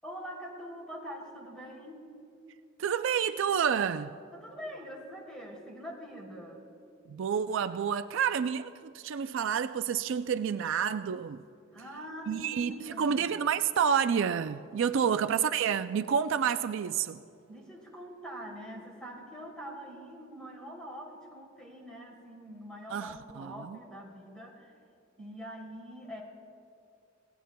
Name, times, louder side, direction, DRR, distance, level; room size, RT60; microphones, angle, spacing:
voice 1, 0.0-2.1 4.3-6.7 11.7-13.4 17.5-24.8 25.2-26.2, equal, 5° left, 3.0 m, -44 dB
voice 2, 2.8-4.1 7.1-11.4 12.3-12.7 13.0-17.2 22.9-23.8, right 7 dB, 65° right, 0.4 m, -29 dB
29.5 x 17.5 x 2.2 m
head